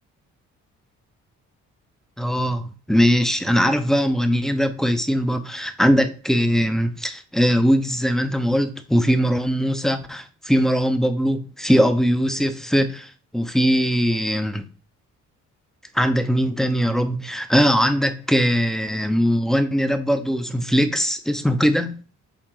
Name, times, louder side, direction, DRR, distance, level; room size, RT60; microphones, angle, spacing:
voice 1, 2.2-14.6 15.9-22.0, equal, ahead, 0.7 m, -20 dB
7.3 x 3.9 x 3.9 m
cardioid pair, 90°, 30 cm